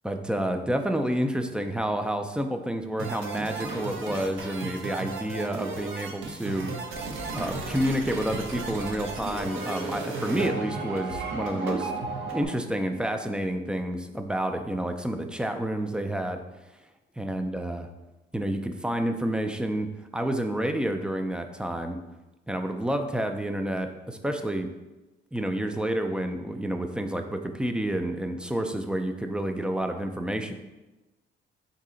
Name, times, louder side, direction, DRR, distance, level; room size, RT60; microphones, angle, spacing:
voice 1, 0.0-6.7 7.4-11.9 12.3-16.4 17.2-17.9 18.3-22.0 22.5-24.7 25.3-30.5, right 1 dB, 5° right, 6 dB, 0.3 m, -29 dB
sound 1, 3.0-12.5, right 3 dB, 85° right, 0.7 m, -34 dB
4.0 x 2.8 x 3.7 m, 1.1 s
cardioid pair, 90°, 20 cm